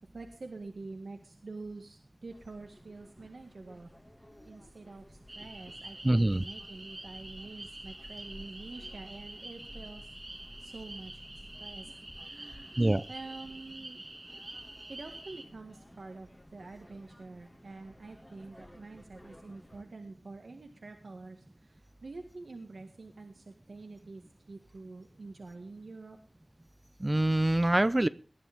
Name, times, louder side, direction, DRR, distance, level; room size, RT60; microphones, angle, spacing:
voice 1, 0.1-3.9 4.4-10.1 10.6-11.2 11.6-11.9 12.2-14.1 14.9-26.2, right 3 dB, 80° right, 4 dB, 1.7 m, -47 dB
sound 1, 2.3-19.8, left 1 dB, 20° left, 1.9 m, -55 dB
sound 2, 5.3-15.4, right 1 dB, 45° right, 2.3 m, -47 dB
voice 2, 6.0-6.4 12.8-13.0 27.0-28.1, right 1 dB, 30° right, 15 dB, 0.7 m, -25 dB
19.5 x 11.0 x 3.5 m, 0.36 s
wide cardioid pair, 55°, 0 cm